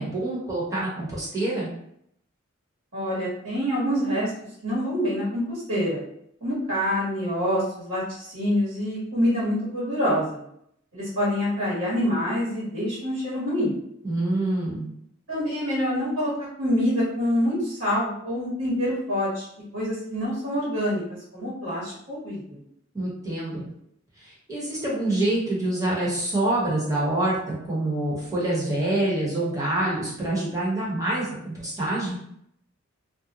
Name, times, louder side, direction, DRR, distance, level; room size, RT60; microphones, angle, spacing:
voice 1, 0.0-1.7 14.0-14.9 22.9-23.6 24.2-32.2, right 1 dB, 15° right, -7 dB, 1.0 m, -26 dB
voice 2, 2.9-4.3 4.6-6.0 6.4-10.4 10.9-13.7 15.3-19.5 19.7-21.0 21.3-22.6, equal, 75° right, -8 dB, 1.3 m, -26 dB
2.5 x 2.2 x 2.9 m, 0.72 s
head